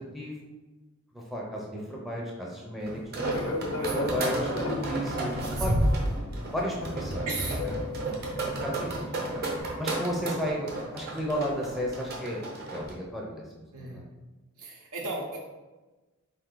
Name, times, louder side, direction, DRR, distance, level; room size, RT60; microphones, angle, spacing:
voice 1, 0.1-0.5 1.1-3.0 3.3-5.7 6.5-7.3 8.4-12.4 12.7-14.1, equal, ahead, -3 dB, 0.5 m, -34 dB
sound 1, 2.9-12.9, right 1 dB, 45° right, 0.9 m, -31 dB
Fixed-wing aircraft airplane, 3.2-9.6, left 3 dB, 55° left, 0.5 m, -37 dB
voice 2, 3.3-4.0 5.5-5.8 7.3-7.7 7.9-8.2 13.7-14.0 14.6-15.4, right 3 dB, 80° right, -4 dB, 0.8 m, -37 dB
4.5 x 2.7 x 3.7 m, 1.2 s
head